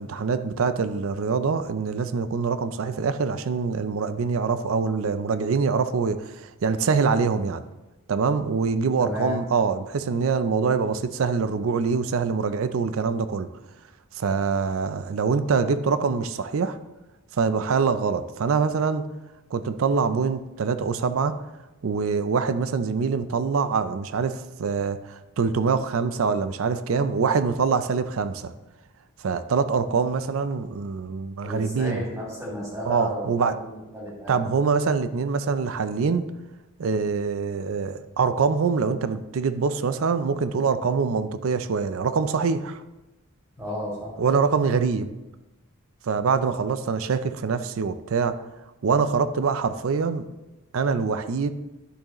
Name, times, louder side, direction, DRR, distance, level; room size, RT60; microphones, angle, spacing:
voice 1, 0.0-7.6 8.1-13.5 14.2-16.8 17.3-19.0 19.5-21.3 21.8-28.5 29.2-32.0 32.9-33.5 34.3-36.3 36.8-42.8 44.2-45.1 46.0-48.4 48.8-50.2 50.7-51.5, right 5 dB, 75° right, 12 dB, 0.4 m, -24 dB
voice 2, 9.0-9.4 31.4-34.4 43.6-44.2, left 1 dB, 15° right, -5 dB, 2.9 m, -33 dB
11.0 x 6.3 x 3.0 m, 1.0 s
head